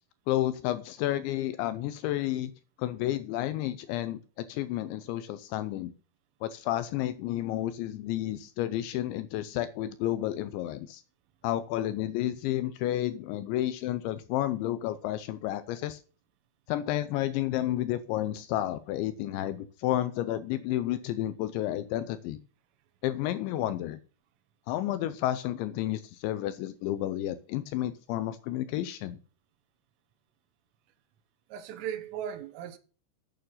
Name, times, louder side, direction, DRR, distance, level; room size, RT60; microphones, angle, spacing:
voice 1, 0.3-2.5 2.8-5.9 6.4-11.0 11.4-16.0 16.7-22.4 23.0-24.0 24.7-29.2, left 13 dB, 80° left, 2.7 m, -31 dB
voice 2, 31.5-32.8, right 9 dB, 85° right, 3.7 m, -37 dB
9.1 x 8.9 x 5.6 m
omnidirectional pair, 5.7 m